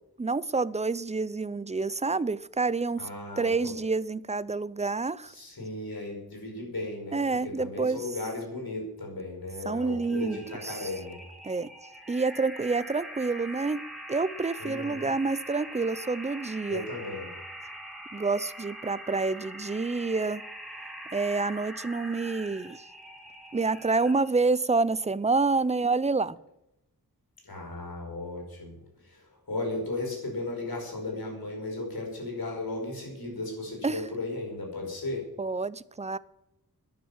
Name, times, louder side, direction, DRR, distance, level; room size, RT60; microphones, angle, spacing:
voice 1, 0.2-3.1 3.4-5.3 7.1-8.0 9.7-10.9 11.4-11.7 12.1-13.8 14.1-16.9 18.1-20.4 21.1-22.8 23.5-26.4 33.8-34.0 35.4-36.2, right 3 dB, 20° right, 18 dB, 0.5 m, -28 dB
voice 2, 3.0-3.8 5.3-11.2 14.6-15.1 16.7-17.3 27.4-28.8 29.0-35.2, left 2 dB, 75° left, 1 dB, 5.4 m, -36 dB
Audio brainscan, 9.8-24.4, right 1 dB, ahead, 2.9 m, -43 dB
11.5 x 10.5 x 7.2 m, 0.87 s
wide cardioid pair, 80°, 37 cm